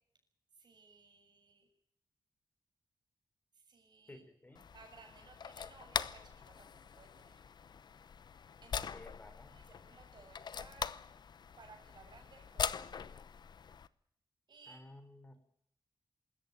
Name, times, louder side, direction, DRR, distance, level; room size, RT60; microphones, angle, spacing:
voice 1, 0.6-1.7 3.5-4.2 4.7-7.4 8.6-8.9 9.5-11.0 11.6-13.3 14.5-14.8, right 4 dB, 65° right, 4 dB, 7.2 m, -60 dB
voice 2, 4.1-4.6 8.8-9.7 14.7-15.3, left 1 dB, 25° left, 8 dB, 3.7 m, -55 dB
sound 1, 4.5-13.9, left 7 dB, 65° left, 0.9 m, -43 dB
25.0 x 14.0 x 9.4 m, 0.74 s
wide cardioid pair, 125°, 8 cm